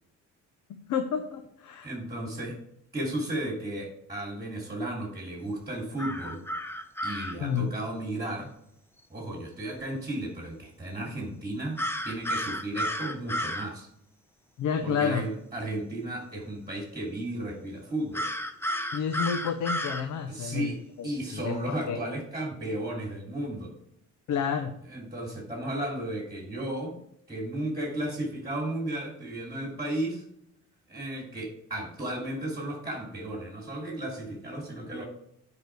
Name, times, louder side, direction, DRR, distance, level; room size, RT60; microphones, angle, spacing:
voice 1, 0.7-1.9 7.4-7.7 14.6-15.2 18.9-22.0 24.3-24.7, left 7 dB, 85° left, 7 dB, 0.8 m, -30 dB
voice 2, 1.8-2.6 2.9-6.4 7.0-8.5 9.1-13.9 14.8-18.3 20.3-23.7 24.9-27.0 27.3-30.2 30.9-35.0, right 1 dB, 15° right, -1 dB, 2.9 m, -34 dB
sound 1, 6.0-7.4 11.8-13.7 18.1-20.0, equal, 10° left, 0.8 m, -32 dB
9.9 x 5.0 x 4.7 m, 0.75 s
cardioid pair, 90°, 30 cm